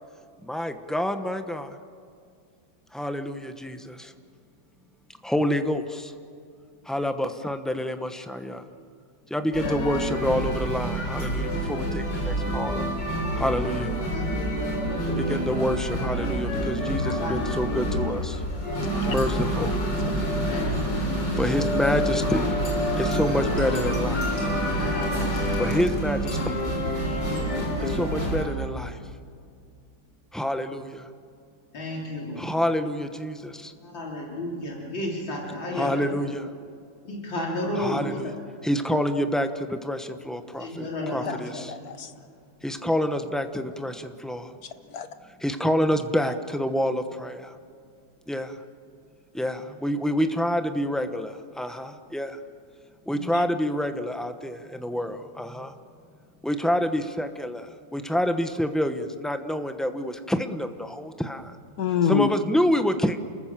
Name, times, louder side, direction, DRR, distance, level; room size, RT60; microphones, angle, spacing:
voice 1, 0.5-1.7 2.9-3.9 5.2-6.1 6.9-8.6 9.3-12.9 13.4-13.9 15.2-18.3 19.1-19.7 21.4-22.5 23.0-24.3 25.6-26.5 27.8-28.9 30.3-30.9 32.4-33.5 35.7-36.5 37.8-38.3 38.6-41.7 42.6-44.5 45.4-47.4 48.3-48.5 49.3-52.3 53.1-55.7 56.4-57.6 57.9-61.4 62.1-63.2, equal, ahead, 8 dB, 0.4 m, -27 dB
sound 1, 9.5-28.5, equal, 75° left, 5.2 m, -27 dB
voice 2, 9.6-10.0 14.1-15.6 17.0-17.6 20.3-20.9 21.4-21.6 22.9-23.4 24.8-25.8 27.0-28.0 31.7-32.5 33.8-36.2 37.0-38.3 40.6-41.8 42.2-42.3, left 1 dB, 90° left, -2 dB, 4.4 m, -34 dB
voice 3, 18.3-19.1 22.3-22.5 41.3-41.4 41.7-42.1 44.9-45.1 53.1-53.4 61.8-62.3, left 8 dB, 55° left, 10 dB, 1.5 m, -28 dB
29.0 x 20.5 x 7.5 m, 2.3 s
omnidirectional pair, 2.0 m